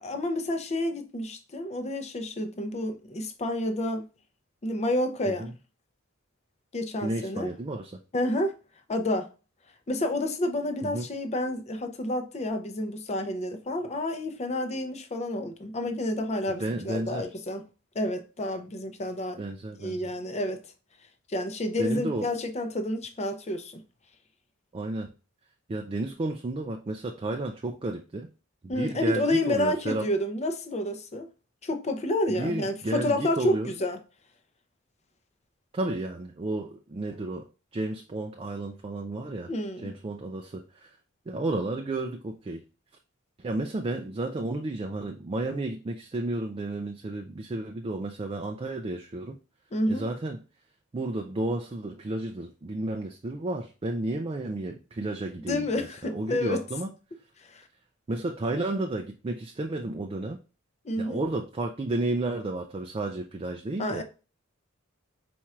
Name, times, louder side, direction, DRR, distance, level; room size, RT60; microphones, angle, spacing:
voice 1, 0.0-4.1 4.6-5.5 6.7-7.5 8.1-8.5 8.9-9.3 9.9-17.6 17.9-19.4 19.8-20.6 21.3-23.8 28.7-31.3 31.6-34.0 39.5-39.9 49.7-50.0 55.3-56.6 57.5-57.6 60.8-61.2 63.8-64.0, left 1 dB, 30° left, 0.6 m, -29 dB
voice 2, 7.0-8.0 10.8-11.1 16.6-17.3 19.4-20.0 21.8-22.3 24.7-25.1 25.7-28.3 28.6-30.1 32.3-33.7 35.7-37.5 37.7-39.5 39.8-40.9 41.3-42.6 43.4-49.4 49.9-50.4 50.9-56.9 58.1-60.4 61.0-64.0, right 2 dB, 25° right, 0.4 m, -32 dB
4.5 x 4.2 x 2.4 m
head